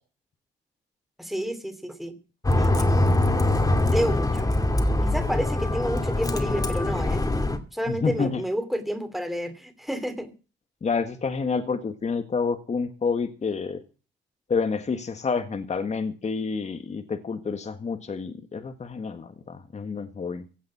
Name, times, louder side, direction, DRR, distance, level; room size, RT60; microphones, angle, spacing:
voice 1, 1.2-2.2 2.6-3.1 3.9-4.5 5.0-7.3 7.7-10.3, equal, ahead, 9 dB, 2.8 m, -30 dB
Bus, 2.4-7.6, left 1 dB, 20° left, 2.4 m, -23 dB
voice 2, 7.8-8.4 10.8-13.8 14.5-20.5, left 5 dB, 35° left, 7 dB, 1.7 m, -28 dB
16.5 x 7.5 x 7.4 m, 0.35 s
cardioid pair, 90°, 20 cm